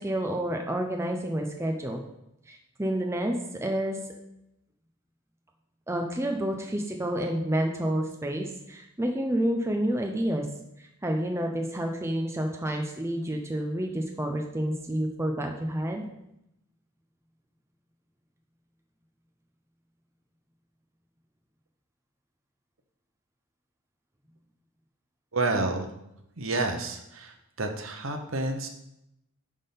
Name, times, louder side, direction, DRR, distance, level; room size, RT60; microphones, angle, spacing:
voice 1, 0.0-2.0 2.5-3.4 3.6-4.0 5.9-10.4 11.0-16.0, right 1 dB, 10° right, 2 dB, 0.6 m, -29 dB
voice 2, 25.3-25.9 26.4-28.7, right 2 dB, 60° right, 5 dB, 1.0 m, -29 dB
9.7 x 3.7 x 5.6 m, 0.84 s
head